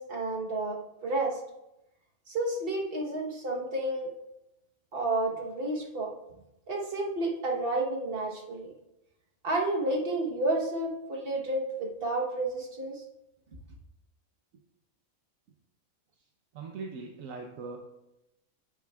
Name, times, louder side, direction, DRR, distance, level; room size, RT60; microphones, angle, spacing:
voice 1, 0.0-1.4 2.3-4.1 4.9-6.1 6.7-8.7 9.4-13.0, right 2 dB, 45° right, 0 dB, 1.3 m, -31 dB
voice 2, 16.5-17.8, right 4 dB, 70° right, 2 dB, 1.1 m, -40 dB
9.2 x 8.5 x 2.3 m, 0.91 s
omnidirectional pair, 1.5 m